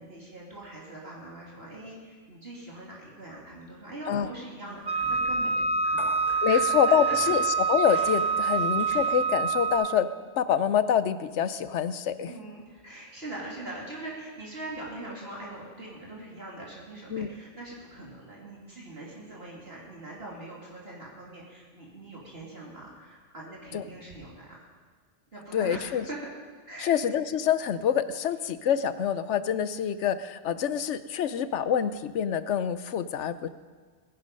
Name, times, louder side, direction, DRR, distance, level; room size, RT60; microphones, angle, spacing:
voice 1, 0.0-7.2 8.4-8.7 12.3-24.7 25.3-26.3 26.7-27.0, right 2 dB, 55° right, -4 dB, 3.0 m, -42 dB
sound 1, 4.6-9.7, equal, 10° right, 4.8 m, -47 dB
Wind instrument woodwind instrument, 4.9-10.1, right 5 dB, 30° right, 0.4 m, -26 dB
voice 2, 6.4-7.4 7.7-10.1 10.4-12.3 17.1-17.3 23.7-23.8 25.5-26.0 26.8-33.5, left 8 dB, 75° left, 13 dB, 1.0 m, -26 dB
20.0 x 11.0 x 5.3 m, 1.5 s
omnidirectional pair, 1.2 m